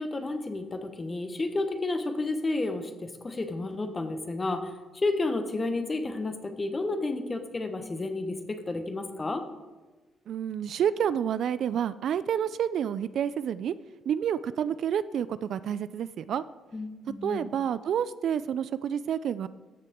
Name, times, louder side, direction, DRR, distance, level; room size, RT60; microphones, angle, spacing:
voice 1, 0.0-4.7 5.0-9.4 16.7-17.5, left 2 dB, 25° left, 8 dB, 1.1 m, -31 dB
voice 2, 10.3-13.7 14.1-16.4 17.2-19.5, right 9 dB, 65° right, 16 dB, 0.3 m, -29 dB
13.5 x 6.5 x 3.6 m, 1.2 s
cardioid pair, 90°, 0 cm